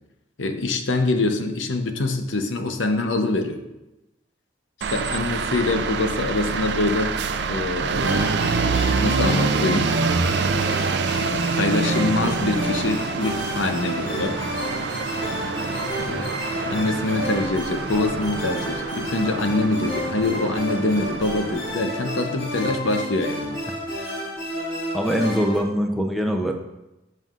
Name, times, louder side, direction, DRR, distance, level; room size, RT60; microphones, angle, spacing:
voice 1, 0.4-3.6 4.9-7.2 7.5-8.3 8.9-9.9 11.5-14.5 16.0-16.3 16.7-23.6, left 2 dB, 75° left, 6 dB, 0.8 m, -24 dB
sound 1, 4.8-21.7, right 4 dB, 60° right, 0.4 m, -26 dB
sound 2, 8.0-25.6, equal, 50° left, 3.1 m, -31 dB
voice 2, 24.9-26.5, equal, ahead, 3 dB, 0.6 m, -23 dB
15.0 x 5.5 x 2.5 m, 0.95 s
head